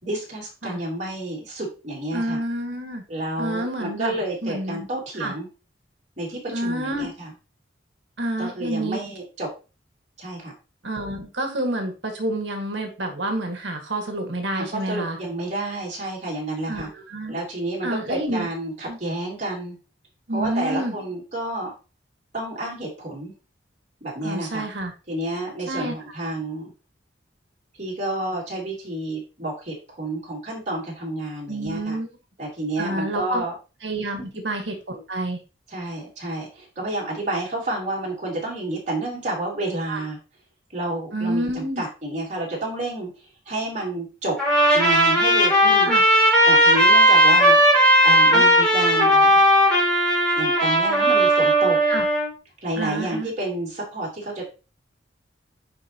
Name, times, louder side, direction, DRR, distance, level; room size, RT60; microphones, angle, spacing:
voice 1, 0.0-2.4 3.1-5.5 6.2-7.3 8.4-9.5 10.2-10.5 14.5-16.9 17.3-19.8 20.3-21.7 22.3-23.3 24.0-24.7 25.1-26.7 27.8-32.0 32.4-33.5 34.2-34.3 35.7-40.2 40.7-43.1 43.5-44.4 44.7-45.9 46.5-49.4 50.4-51.8 52.6-54.5, right 1 dB, 40° right, -3 dB, 3.5 m, -30 dB
voice 2, 2.1-3.0 3.4-4.2 4.4-4.9 5.2-5.3 6.5-7.1 8.2-9.0 10.8-15.2 16.7-17.3 17.8-18.5 18.9-19.0 20.3-20.9 24.2-24.9 25.7-25.9 31.5-32.1 32.8-33.4 33.8-35.4 39.9-40.0 41.1-41.8 45.8-46.0 48.3-48.5 51.9-52.0 52.8-53.3, right 1 dB, 75° right, 3 dB, 1.8 m, -28 dB
Trumpet, 44.4-52.3, equal, 5° left, 2.9 m, -17 dB
9.9 x 4.5 x 2.9 m, 0.31 s
head